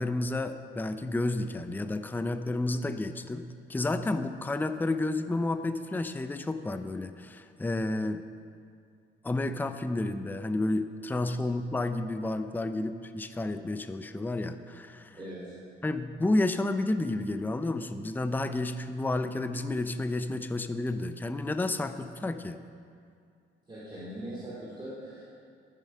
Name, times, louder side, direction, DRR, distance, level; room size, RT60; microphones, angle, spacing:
voice 1, 0.0-3.4 3.7-8.2 9.2-15.2 15.8-22.6, left 2 dB, 10° left, 9 dB, 0.5 m, -31 dB
voice 2, 15.1-15.5 23.7-25.3, right 1 dB, 25° right, -8 dB, 2.9 m, -41 dB
13.5 x 7.5 x 5.5 m, 2.3 s
cardioid pair, 90°, 20 cm